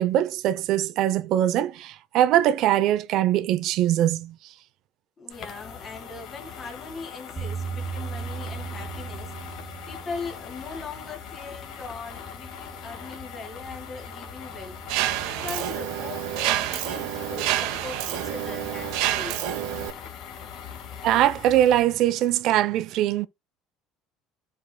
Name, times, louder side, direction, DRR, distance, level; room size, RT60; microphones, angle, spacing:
voice 1, 0.0-4.4 21.0-23.3, right 12 dB, 50° right, 0.6 m, -22 dB
voice 2, 5.2-14.8 15.2-19.4, left 4 dB, 20° left, 1.7 m, -40 dB
sound 1, 5.3-21.8, left 7 dB, 45° left, 1.8 m, -41 dB
sound 2, 7.4-19.9, right 6 dB, 25° right, 3.1 m, -41 dB
Mechanisms, 14.9-19.9, right 13 dB, 75° right, 1.0 m, -28 dB
13.0 x 5.0 x 2.2 m
cardioid pair, 175°, 0 cm